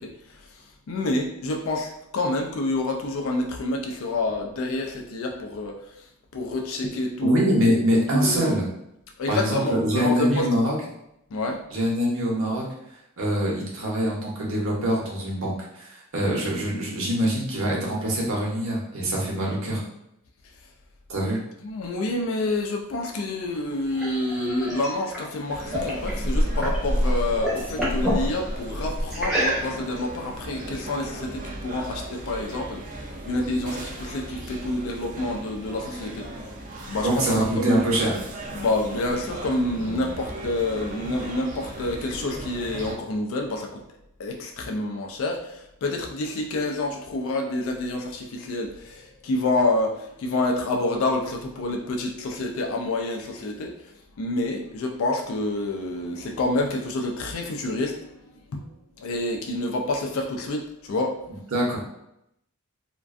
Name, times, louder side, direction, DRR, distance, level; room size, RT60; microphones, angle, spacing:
voice 1, 0.0-6.1 6.3-7.8 8.1-8.6 9.2-10.5 11.3-11.6 21.2-21.3 21.6-36.3 36.9-37.8 38.5-43.8 44.2-58.7 59.0-61.2, left 2 dB, 60° left, 2 dB, 0.3 m, -28 dB
voice 2, 7.2-8.6 9.3-10.7 11.7-12.7 13.2-19.8 21.1-21.4 37.0-38.1 39.9-40.0 61.5-61.8, equal, 60° right, -3 dB, 0.7 m, -24 dB
sound 1, 23.5-26.9 27.2-28.2 29.1-30.0, equal, ahead, 0.7 m, -29 dB
sound 2, 25.5-43.0, equal, 35° right, 0.3 m, -33 dB
2.4 x 2.2 x 2.4 m, 0.81 s
head